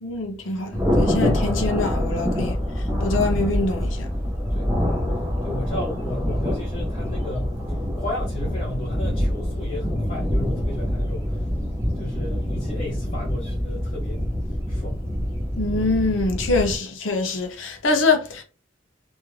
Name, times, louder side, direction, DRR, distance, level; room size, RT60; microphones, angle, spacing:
voice 1, 0.0-2.6 3.0-4.1 15.6-18.4, left 3 dB, 75° left, 0.7 m, -24 dB
Thunder, 0.7-16.8, equal, 15° right, 0.8 m, -25 dB
voice 2, 5.4-11.4 11.9-14.2 14.7-15.0, left 1 dB, 35° left, 0.6 m, -34 dB
2.4 x 2.1 x 3.1 m
head